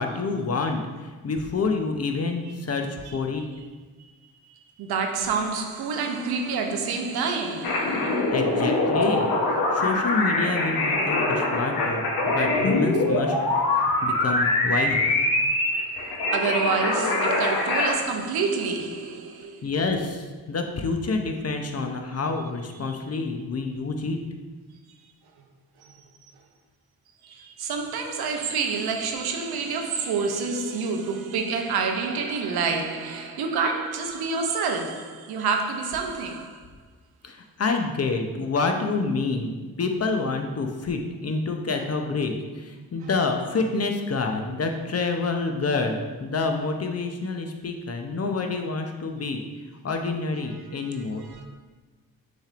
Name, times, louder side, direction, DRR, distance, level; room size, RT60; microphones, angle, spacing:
voice 1, 0.0-3.4 8.3-9.3 9.7-13.4 14.0-15.1 19.6-24.2 37.2-39.5 39.8-49.4 49.8-51.2, left 3 dB, 40° left, 0.6 m, -27 dB
voice 2, 4.8-8.3 16.3-19.7 22.8-23.0 25.8-26.0 27.2-36.6 51.2-51.5, right 5 dB, 75° right, 0.7 m, -28 dB
sound 1, 7.6-17.9, left 2 dB, 75° left, 0.9 m, -23 dB
6.2 x 3.4 x 2.5 m
supercardioid pair, 45°, 38 cm